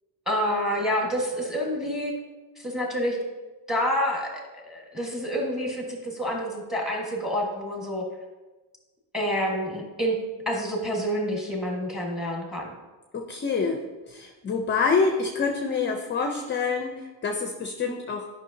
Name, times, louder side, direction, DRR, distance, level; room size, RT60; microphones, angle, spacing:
voice 1, 0.3-2.1 2.6-3.2 3.7-8.0 9.1-10.2 10.4-12.7, equal, ahead, -1 dB, 1.3 m, -28 dB
voice 2, 13.1-13.8 14.1-18.2, left 4 dB, 25° left, 4 dB, 0.5 m, -26 dB
10.5 x 5.7 x 2.7 m, 1.2 s
cardioid pair, 150°, 43 cm